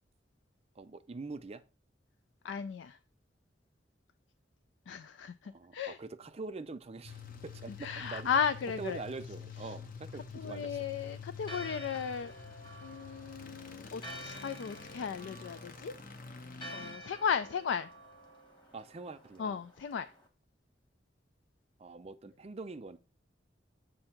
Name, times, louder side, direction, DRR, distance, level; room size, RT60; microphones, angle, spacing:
voice 1, 0.8-1.6 5.4-8.3 8.8-10.8 18.7-19.6 21.8-23.0, right 3 dB, 35° right, 0.5 m, -44 dB
voice 2, 2.4-3.0 4.9-6.0 7.8-9.0 9.6-9.7 10.3-12.3 12.8-15.9 16.7-17.9 19.4-20.1, left 7 dB, 75° left, 0.3 m, -35 dB
sound 1, 7.0-18.2, left 5 dB, 50° left, 0.7 m, -48 dB
Church bell, 11.4-20.3, equal, 25° left, 1.3 m, -50 dB
7.7 x 2.7 x 5.7 m
head